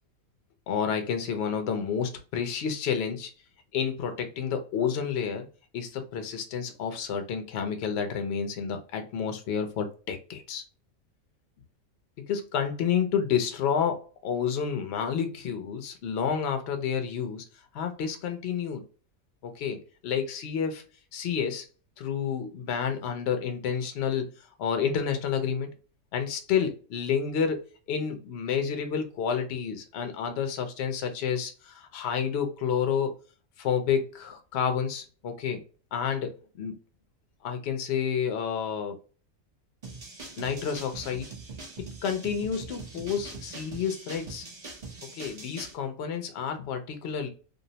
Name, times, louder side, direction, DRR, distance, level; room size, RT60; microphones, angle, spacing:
voice 1, 0.7-3.3 3.7-5.5 5.7-10.6 12.2-17.4 17.7-18.8 19.4-20.8 21.1-21.7 22.0-25.7 26.1-33.1 33.6-35.6 35.9-36.7 37.4-39.0 40.4-41.3 42.0-44.4 45.1-47.3, left 7 dB, 60° left, 6 dB, 0.7 m, -30 dB
sound 1, 39.8-45.7, right 3 dB, 40° right, 0.7 m, -42 dB
2.6 x 2.0 x 2.7 m, 0.37 s
omnidirectional pair, 1.4 m